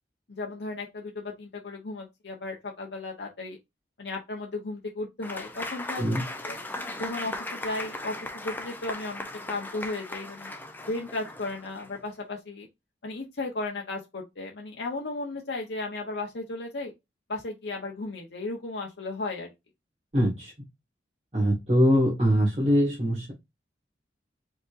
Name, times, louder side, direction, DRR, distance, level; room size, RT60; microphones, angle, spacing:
voice 1, 0.3-3.6 4.0-6.6 7.0-10.5 10.9-12.7 13.0-16.9 17.3-19.5, left 2 dB, 70° left, 0.8 m, -35 dB
Applause / Crowd, 5.2-12.0, left 2 dB, 10° left, 0.5 m, -38 dB
voice 2, 20.1-20.5 21.3-23.3, equal, 35° right, 1.7 m, -23 dB
4.9 x 3.9 x 2.5 m
head